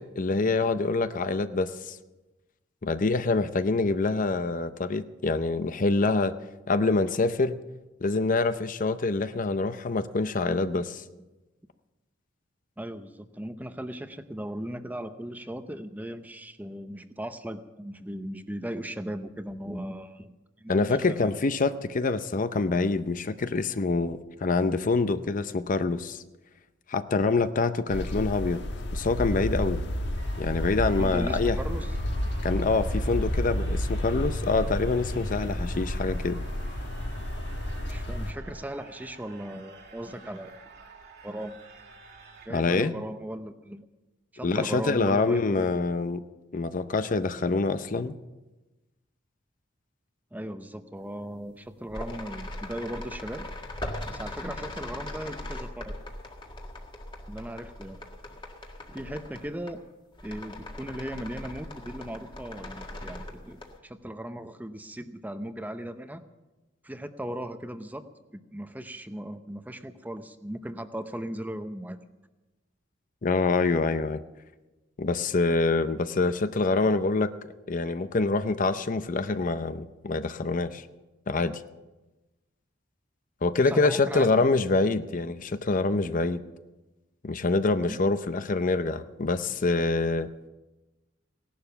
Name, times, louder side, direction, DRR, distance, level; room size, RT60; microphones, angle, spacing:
voice 1, 0.0-2.0 2.8-6.3 6.7-7.5 8.0-11.0 20.7-26.2 26.9-28.6 28.9-29.8 30.4-31.6 32.4-36.4 42.5-42.9 44.4-46.2 46.5-48.1 73.2-74.2 75.0-77.3 77.7-80.8 81.3-81.6 83.4-86.4 87.2-90.3, left 3 dB, 45° left, 12 dB, 0.6 m, -26 dB
voice 2, 12.8-21.3 31.0-31.9 37.9-40.6 41.2-41.6 42.5-43.9 44.3-45.7 50.3-53.5 54.1-56.0 57.3-58.0 58.9-59.8 60.2-66.2 66.8-68.0 68.3-72.0 83.6-84.4 87.9-88.0, right 1 dB, 10° right, 10 dB, 0.7 m, -37 dB
sound 1, 27.9-38.3, left 1 dB, 65° left, 1.3 m, -31 dB
sound 2, 30.2-42.5, right 4 dB, 55° right, 2.1 m, -50 dB
sound 3, 51.5-51.6 51.9-59.8 60.1-63.8, left 1 dB, 25° left, 1.7 m, -40 dB
17.5 x 11.5 x 6.9 m, 1.1 s
head